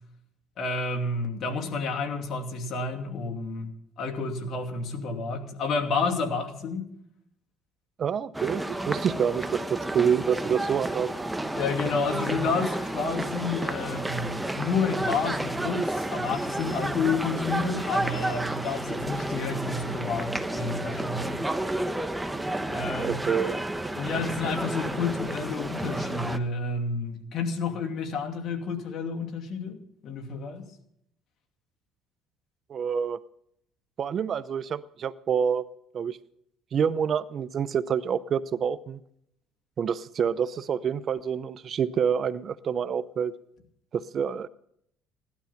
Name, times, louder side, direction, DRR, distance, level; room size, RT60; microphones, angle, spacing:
voice 1, 0.6-3.7 4.0-6.9 11.5-21.4 22.7-23.2 23.9-30.7, left 4 dB, 55° left, 2.6 m, -30 dB
voice 2, 8.0-11.2 22.9-23.6 32.7-33.2 34.0-35.6 35.9-36.2 36.7-39.0 39.8-43.3 43.9-44.5, right 7 dB, 45° right, 0.6 m, -27 dB
sound 1, 8.3-26.4, right 1 dB, 10° right, 1.0 m, -31 dB
17.0 x 12.0 x 5.8 m
supercardioid pair, 95°, 0 cm